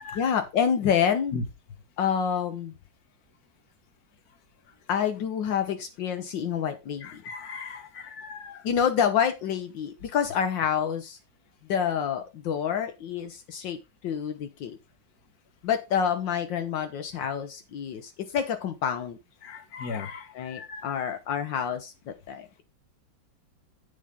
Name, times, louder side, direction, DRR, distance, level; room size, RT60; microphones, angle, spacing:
voice 1, 0.1-1.3 2.0-2.7 4.9-7.2 8.6-11.2 11.7-14.8 15.6-19.2 20.3-22.6, left 8 dB, 80° left, 1.6 m, -28 dB
voice 2, 7.0-8.6 19.4-20.9, left 5 dB, 55° left, 1.7 m, -38 dB
8.7 x 7.3 x 3.7 m
omnidirectional pair, 2.0 m